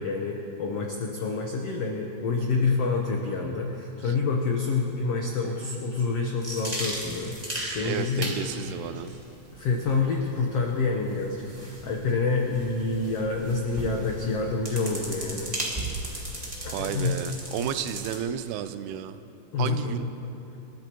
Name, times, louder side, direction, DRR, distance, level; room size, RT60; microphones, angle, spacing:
voice 1, 0.0-7.4 7.7-8.7 9.5-15.6 16.0-16.4 16.6-17.1 19.5-20.1, left 4 dB, 85° left, 0 dB, 1.3 m, -28 dB
sound 1, 6.4-18.2, right 1 dB, 20° right, 1.0 m, -37 dB
voice 2, 7.8-9.2 16.7-19.2 19.6-20.1, right 9 dB, 90° right, 11 dB, 2.6 m, -32 dB
27.5 x 14.0 x 3.0 m, 2.8 s
omnidirectional pair, 4.4 m